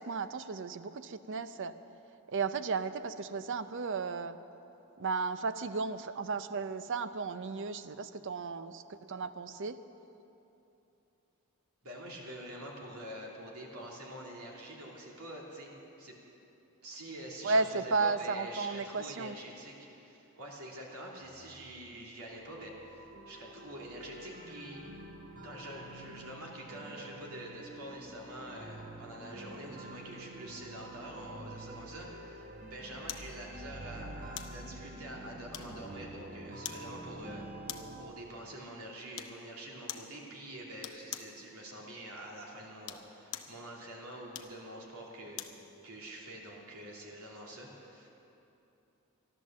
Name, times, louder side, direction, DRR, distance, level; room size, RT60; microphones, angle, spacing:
voice 1, 0.0-1.8 2.3-4.4 5.0-9.8 17.4-19.4, right 4 dB, 55° right, 12 dB, 0.6 m, -34 dB
voice 2, 11.8-16.1 16.8-23.0 23.3-24.8 25.4-37.4 38.0-45.6 45.8-48.1, right 1 dB, 80° right, -2 dB, 2.7 m, -46 dB
sound 1, 21.2-38.0, right 1 dB, 40° right, 1.0 m, -48 dB
sound 2, 33.1-33.3 34.4-34.6 35.5-36.0 36.6-36.9 37.7-38.0 39.1-39.4 39.9-40.1 40.8-41.4 42.7-43.6 44.3-45.6 46.1-46.2, left 11 dB, 65° left, 0.8 m, -43 dB
13.5 x 12.0 x 7.3 m, 2.9 s
head